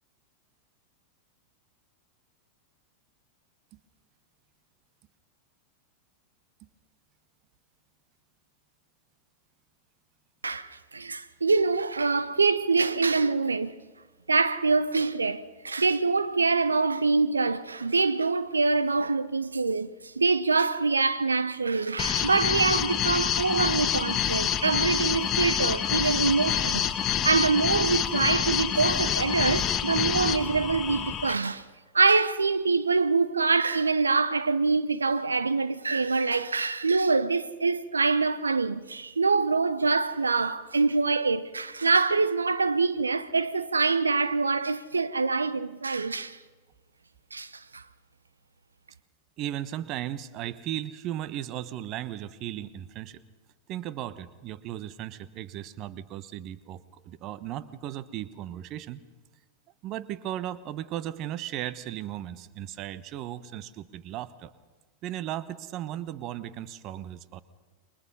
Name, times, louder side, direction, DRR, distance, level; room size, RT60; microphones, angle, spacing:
voice 1, 10.4-13.8 14.3-27.0 27.2-31.6 31.9-46.4 47.3-47.8, right 4 dB, 75° right, 0.8 m, -25 dB
sound 1, 22.0-31.3, left 9 dB, 25° left, 1.5 m, -27 dB
voice 2, 49.4-53.2 53.7-59.0 59.8-64.5 65.0-67.4, right 12 dB, 35° right, 1.1 m, -36 dB
29.0 x 24.0 x 5.5 m
figure-of-eight pair, 90°, 0 cm